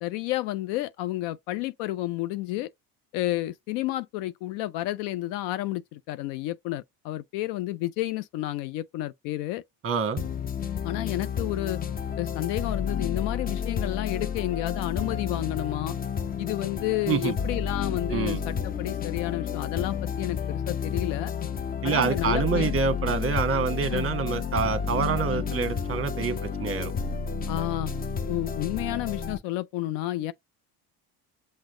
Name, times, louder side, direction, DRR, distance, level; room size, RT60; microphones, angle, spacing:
voice 1, 0.0-2.7 3.1-9.6 10.8-11.8 12.2-15.9 16.4-21.3 21.8-22.7 23.9-24.1 25.3-25.4 27.5-27.9 28.3-30.3, left 16 dB, 75° left, 0.5 m, -31 dB
voice 2, 9.8-10.2 17.1-17.3 18.1-18.4 21.8-26.9, right 6 dB, 30° right, 1.0 m, -27 dB
sound 1, 10.2-29.4, left 6 dB, 20° left, 0.4 m, -31 dB
6.1 x 2.1 x 3.7 m
supercardioid pair, 95°, 44 cm